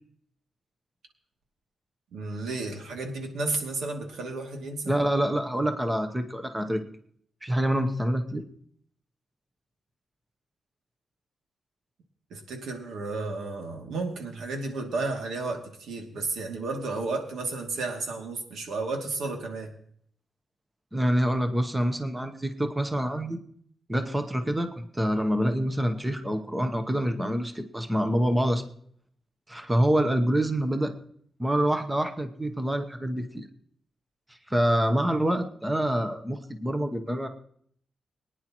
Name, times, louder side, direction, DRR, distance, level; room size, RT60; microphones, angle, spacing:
voice 1, 2.1-5.0 12.3-19.7, right 3 dB, 90° right, 2 dB, 2.5 m, -32 dB
voice 2, 4.9-6.8 7.4-8.4 20.9-23.4 23.9-28.6 29.5-30.9 31.4-33.5 34.5-37.3, right 1 dB, 10° right, 7 dB, 0.9 m, -26 dB
22.5 x 10.0 x 3.0 m, 0.63 s
wide cardioid pair, 175°, 0 cm